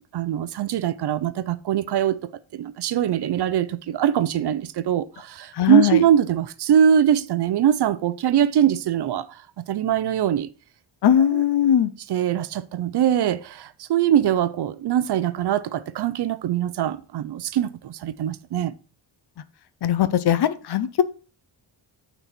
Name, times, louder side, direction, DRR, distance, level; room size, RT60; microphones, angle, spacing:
voice 1, 0.1-2.2 2.5-9.4 9.7-10.5 11.3-11.4 12.1-18.7, right 10 dB, 60° right, 0.6 m, -22 dB
voice 2, 5.5-6.0 11.0-11.9 19.8-21.0, left 10 dB, 55° left, 0.7 m, -20 dB
9.0 x 4.2 x 4.3 m
wide cardioid pair, 125°, 46 cm